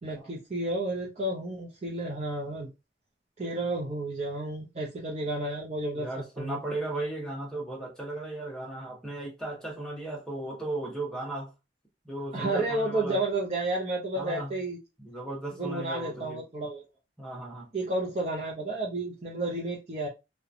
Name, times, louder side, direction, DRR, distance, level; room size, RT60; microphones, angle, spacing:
voice 1, 0.0-2.7 3.4-6.1 6.4-6.6 12.3-14.8 15.6-16.8 17.7-20.1, right 2 dB, 35° right, 0.5 m, -31 dB
voice 2, 6.0-11.5 12.0-13.2 14.2-14.5 15.0-16.4 17.2-17.7, right 2 dB, 5° left, 0.7 m, -36 dB
2.8 x 2.1 x 2.4 m
head